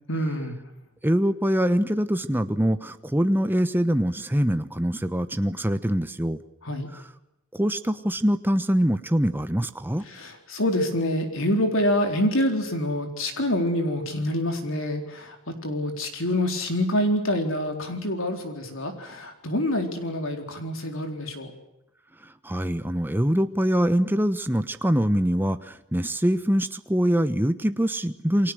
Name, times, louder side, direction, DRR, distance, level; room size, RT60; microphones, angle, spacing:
voice 1, 0.1-0.6 6.6-6.9 10.1-21.5, left 1 dB, 65° left, 5 dB, 4.3 m, -26 dB
voice 2, 1.0-6.4 7.5-10.0 22.4-28.5, equal, 10° right, 10 dB, 1.1 m, -24 dB
29.5 x 22.5 x 6.4 m, 0.86 s
head